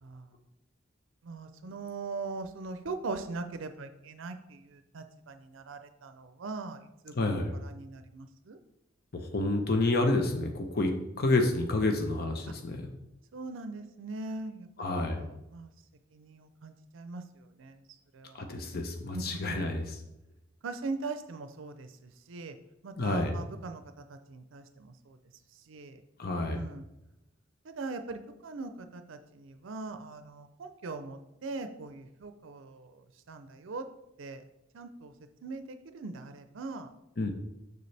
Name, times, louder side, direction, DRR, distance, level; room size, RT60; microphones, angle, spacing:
voice 1, 0.0-0.3 1.2-8.6 12.5-12.6 13.3-14.9 15.2-15.7 16.1-17.8 18.1-18.5 19.1-19.7 20.6-22.6 22.8-25.2 25.5-26.0 26.5-26.8 27.6-33.9 34.2-34.4 34.7-35.1 35.4-36.9, right 3 dB, 70° right, 9 dB, 0.5 m, -41 dB
voice 2, 7.1-7.5 9.1-10.9 11.2-12.9 14.8-15.2 18.4-19.9 23.0-23.4 26.2-26.7 37.2-37.3, left 2 dB, 50° left, 4 dB, 0.8 m, -29 dB
6.7 x 6.7 x 3.3 m, 0.89 s
head